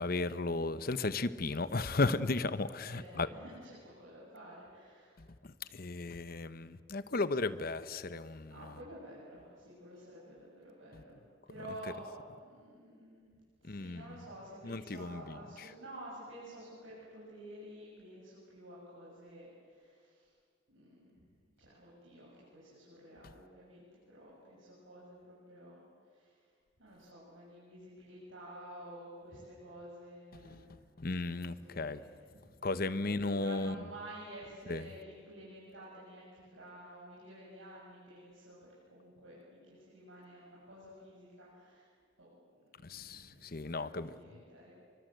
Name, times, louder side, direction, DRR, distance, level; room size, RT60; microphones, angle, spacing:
voice 1, 0.0-3.3 5.4-8.5 13.7-14.0 14.6-15.4 30.5-30.6 31.0-32.0 32.6-33.7 34.7-34.8 42.8-44.1, left 3 dB, 50° left, 14 dB, 0.9 m, -35 dB
voice 2, 2.8-5.2 8.2-11.2 11.5-13.3 13.6-20.3 20.7-21.1 21.6-30.9 31.5-38.6 38.9-41.9 42.2-44.7, right 1 dB, 85° right, -7 dB, 8.0 m, -51 dB
29.5 x 24.0 x 8.0 m, 2.1 s
head